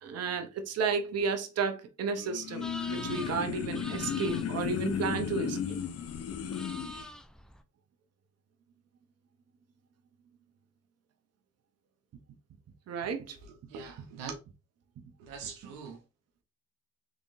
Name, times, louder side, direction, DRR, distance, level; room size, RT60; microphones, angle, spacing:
voice 1, 0.0-5.8 12.9-13.4, right 5 dB, 50° right, 0.9 m, -33 dB
sound 1, 2.2-7.1, left 7 dB, 50° left, 0.7 m, -34 dB
sound 2, 2.6-7.6, equal, ahead, 0.5 m, -46 dB
voice 2, 13.4-14.3 15.2-16.0, right 5 dB, 85° right, 0.9 m, -43 dB
3.7 x 3.5 x 2.6 m
supercardioid pair, 75°, 33 cm